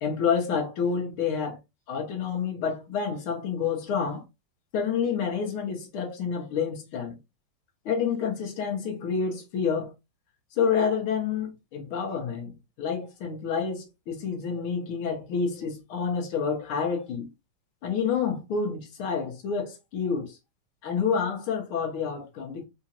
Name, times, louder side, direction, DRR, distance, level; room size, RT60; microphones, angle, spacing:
voice 1, 0.0-1.6 1.9-4.2 4.7-7.1 7.9-9.9 10.6-12.5 12.8-17.3 17.8-20.4 20.8-22.6, left 6 dB, 90° left, 1.9 m, -28 dB
4.3 x 2.5 x 2.9 m
omnidirectional pair, 2.3 m